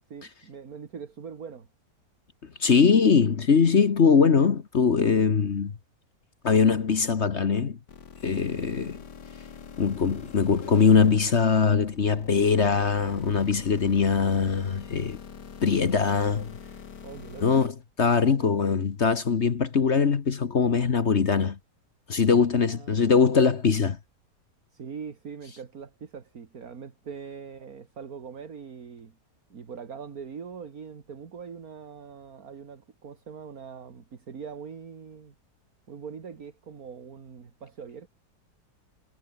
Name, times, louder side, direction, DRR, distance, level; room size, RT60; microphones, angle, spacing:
voice 1, 0.1-1.7 17.0-17.6 18.3-18.6 22.5-23.4 24.7-29.2 29.5-35.3 35.9-38.1, right 6 dB, 55° right, 2.3 m, -42 dB
voice 2, 2.6-5.7 6.4-7.8 8.2-9.0 9.8-15.2 15.6-16.5 17.4-21.6 22.1-24.0, left 5 dB, 45° left, 1.4 m, -22 dB
sound 1, 7.9-17.7, left 7 dB, 70° left, 2.4 m, -45 dB
omnidirectional pair, 1.9 m